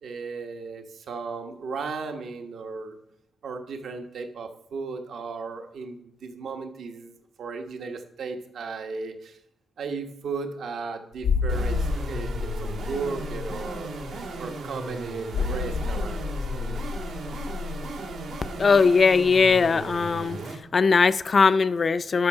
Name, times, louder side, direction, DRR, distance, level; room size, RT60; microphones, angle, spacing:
voice 1, 0.0-3.0 3.4-9.4 9.8-13.9 14.4-16.3 16.6-16.9, right 4 dB, 65° right, 5 dB, 1.2 m, -35 dB
sound 1, 11.2-19.6 19.9-20.0, left 5 dB, 90° left, 1.0 m, -30 dB
sound 2, 11.5-20.6, right 3 dB, 85° right, 2.2 m, -37 dB
voice 2, 18.6-20.4 20.7-22.3, left 5 dB, 40° left, 13 dB, 0.4 m, -20 dB
12.5 x 6.3 x 5.5 m, 0.78 s
cardioid pair, 120°, 0 cm